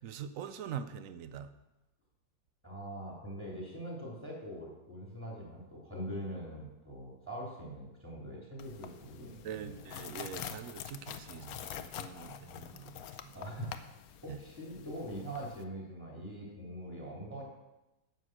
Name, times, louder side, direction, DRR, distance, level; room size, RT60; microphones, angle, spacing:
voice 1, 0.0-1.5 9.2-13.3 14.3-14.4, right 8 dB, 65° right, 12 dB, 0.8 m, -44 dB
voice 2, 2.6-9.7 11.3-11.8 13.3-13.9 14.2-17.4, equal, 5° right, -4 dB, 3.3 m, -43 dB
sound 1, 8.6-15.6, left 10 dB, 70° left, 1.0 m, -46 dB
9.3 x 8.1 x 6.2 m, 0.99 s
omnidirectional pair, 1.9 m